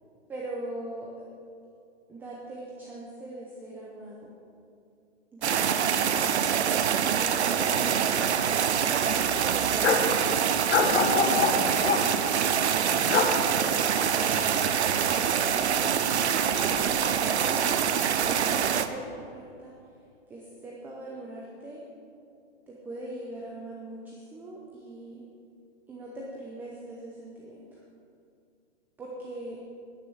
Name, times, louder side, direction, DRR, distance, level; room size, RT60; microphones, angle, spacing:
voice 1, 0.3-1.1 2.1-4.3 5.3-5.9 7.0-8.2 10.4-11.5 13.4-13.9 15.5-19.7 20.3-21.8 22.7-25.2 25.9-27.8 29.0-29.6, right 1 dB, 5° right, -3 dB, 0.7 m, -41 dB
sound 1, 5.4-18.9, right 8 dB, 65° right, 0.9 m, -25 dB
sound 2, 6.4-6.5 6.8-6.9 7.4-8.1 8.4-8.5 9.0-10.1 10.7-12.0 12.9-13.3 13.7-15.7 16.0-16.8, left 5 dB, 70° left, 1.6 m, -28 dB
10.5 x 9.8 x 7.0 m, 2.5 s
hypercardioid pair, 155°, 35 cm